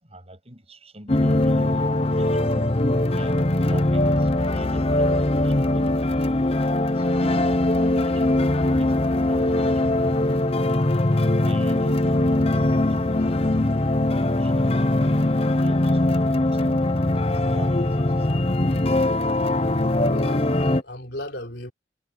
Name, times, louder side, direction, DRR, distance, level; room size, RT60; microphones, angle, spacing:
voice 1, 0.0-2.7 3.1-6.3 6.9-10.9 11.4-15.2 15.5-19.0, right 1 dB, 30° right, 7.0 m, -43 dB
sound 1, 1.1-20.8, left 1 dB, 30° left, 0.8 m, -21 dB
voice 2, 20.0-21.7, left 1 dB, 55° left, 4.3 m, -35 dB
head